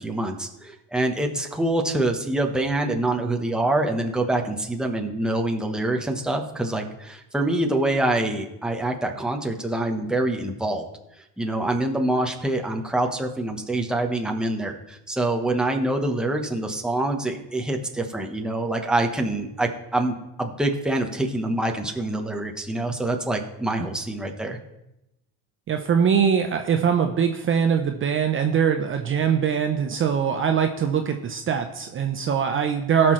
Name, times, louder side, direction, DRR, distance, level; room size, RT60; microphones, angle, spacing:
voice 1, 0.0-10.8 11.2-24.6, right 2 dB, ahead, 2 dB, 1.0 m, -25 dB
voice 2, 25.7-33.1, right 7 dB, 35° right, 5 dB, 0.7 m, -22 dB
17.0 x 6.0 x 3.2 m, 0.89 s
cardioid pair, 120°, 36 cm